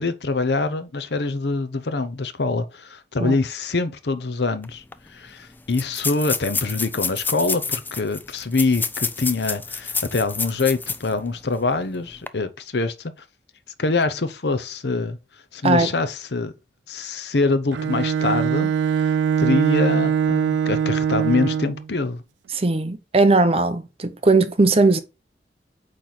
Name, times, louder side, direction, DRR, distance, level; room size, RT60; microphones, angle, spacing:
voice 1, 0.0-4.8 5.1-13.1 13.8-15.2 15.5-16.5 16.9-22.2, left 3 dB, 70° left, 0.7 m, -24 dB
sound 1, 4.6-4.7 4.9-5.0 5.7-11.1 11.5-11.6 12.1-12.3, left 4 dB, 10° left, 0.3 m, -28 dB
Bowed string instrument, 17.7-21.9, right 8 dB, 90° right, 0.3 m, -22 dB
voice 2, 22.5-25.0, right 3 dB, 35° right, 0.7 m, -18 dB
8.5 x 3.3 x 3.9 m
head